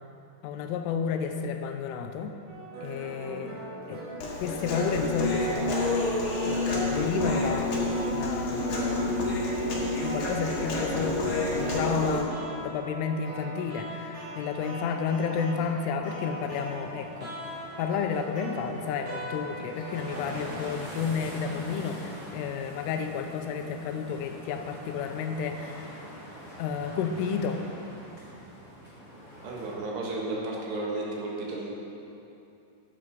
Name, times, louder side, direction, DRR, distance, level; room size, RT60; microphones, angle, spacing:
voice 1, 0.4-2.3 2.8-3.6 3.9-4.0 4.4-6.0 6.5-7.8 8.1-8.8 10.0-12.3 12.6-17.3 17.8-26.0 26.6-27.6, left 6 dB, 90° left, 6 dB, 3.3 m, -31 dB
sound 1, 2.5-20.5, right 1 dB, 45° right, 4.5 m, -41 dB
Human voice, 4.2-12.2, left 2 dB, 55° left, 2.5 m, -28 dB
sound 2, 16.1-29.7, equal, 15° right, 2.1 m, -44 dB
voice 2, 29.4-31.7, right 2 dB, 70° right, -3 dB, 3.4 m, -33 dB
13.0 x 8.7 x 5.2 m, 2.8 s
omnidirectional pair, 5.5 m